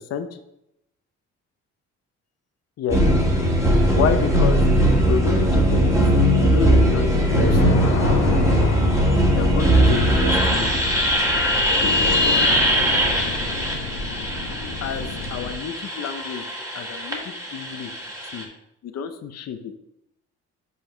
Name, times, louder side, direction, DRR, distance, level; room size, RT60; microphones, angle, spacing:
sound 1, 2.9-18.4, equal, 10° right, 1.7 m, -20 dB
voice 1, 3.9-7.6 9.3-10.8 12.5-13.1 14.8-16.4 16.7-17.9 18.3-18.5 18.8-19.7, left 7 dB, 60° left, 8 dB, 0.7 m, -29 dB
sound 2, 7.3-15.6, left 4 dB, 85° left, 1.0 m, -29 dB
5.6 x 5.1 x 4.5 m, 0.81 s
cardioid pair, 90°, 30 cm